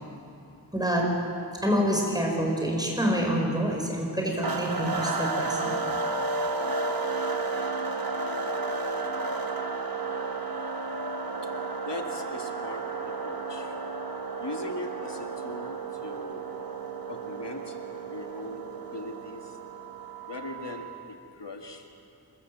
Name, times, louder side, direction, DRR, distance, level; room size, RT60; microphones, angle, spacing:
voice 1, 0.7-1.1 1.6-5.8, equal, 10° right, 0 dB, 5.2 m, -27 dB
sound 1, 4.4-21.1, right 3 dB, 55° right, 1.2 m, -32 dB
voice 2, 11.9-13.7 14.4-16.4 17.1-17.8 18.1-19.6 20.3-21.8, left 2 dB, 85° left, 3 dB, 1.9 m, -40 dB
26.0 x 13.5 x 7.8 m, 2.6 s
wide cardioid pair, 50°, 42 cm